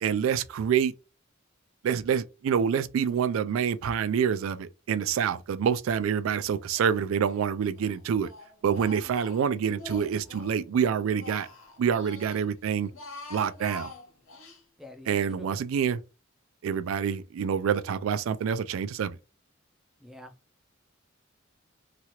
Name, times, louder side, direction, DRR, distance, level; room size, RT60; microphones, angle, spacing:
voice 1, 0.0-0.9 1.8-8.3 8.6-11.5 11.8-12.9 13.3-13.9 15.1-16.0 16.6-19.2, right 7 dB, 80° right, 0.3 m, -27 dB
Speech, 6.7-7.5 7.8-10.6 10.9-12.4 12.8-14.6, left 2 dB, 85° left, 1.0 m, -45 dB
voice 2, 14.8-15.5 20.0-20.3, left 1 dB, ahead, 0.4 m, -47 dB
2.9 x 2.4 x 2.8 m
head